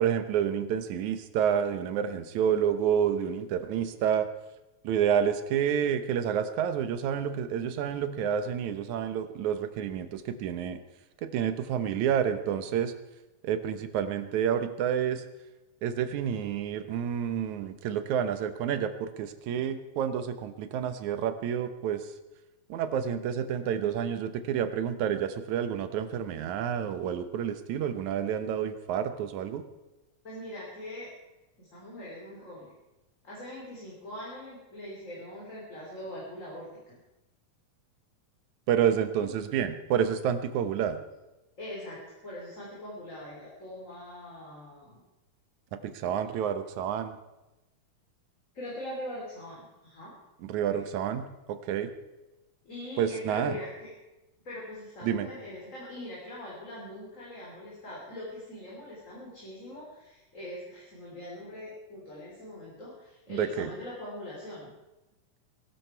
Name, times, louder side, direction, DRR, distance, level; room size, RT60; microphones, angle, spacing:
voice 1, 0.0-4.3 4.8-10.8 11.2-12.9 13.4-15.2 15.8-22.1 22.7-29.6 38.7-41.0 45.7-47.2 50.4-51.9 53.0-53.6 55.0-55.3 63.3-63.7, right 8 dB, 70° right, 10 dB, 2.3 m, -29 dB
voice 2, 30.2-31.1 31.6-32.7 33.2-37.0 39.2-39.3 41.6-45.0 48.5-50.1 50.7-50.9 52.6-53.9 54.4-64.7, left 1 dB, 25° left, -5 dB, 3.8 m, -42 dB
21.5 x 12.5 x 4.6 m, 1.0 s
omnidirectional pair, 3.6 m